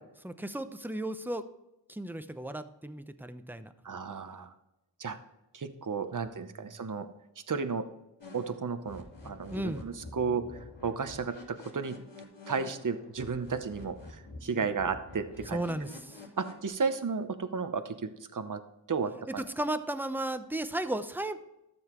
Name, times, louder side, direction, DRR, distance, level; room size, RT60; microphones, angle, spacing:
voice 1, 0.2-1.4 1.9-3.7 9.5-9.8 15.5-16.2 19.4-21.4, right 1 dB, 5° right, 10 dB, 0.8 m, -34 dB
voice 2, 3.8-4.5 5.0-5.2 5.5-7.1 7.5-7.8 8.3-12.0 12.5-15.6 16.4-18.0 18.3-18.6 18.9-19.4, right 5 dB, 45° right, 9 dB, 0.8 m, -33 dB
sound 1, 8.2-16.7, left 2 dB, 85° left, 3.5 m, -48 dB
13.5 x 7.2 x 3.1 m, 0.90 s
wide cardioid pair, 40°, 42 cm